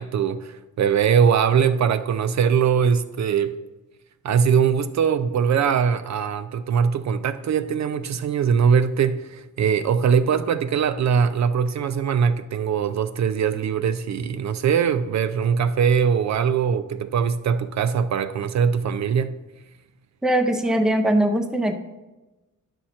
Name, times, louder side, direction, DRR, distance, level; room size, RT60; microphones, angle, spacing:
voice 1, 0.0-3.6 4.2-19.4, right 7 dB, 55° right, 0.4 m, -21 dB
voice 2, 20.2-21.7, right 1 dB, ahead, 0.5 m, -21 dB
9.9 x 6.4 x 4.3 m
wide cardioid pair, 150°, 33 cm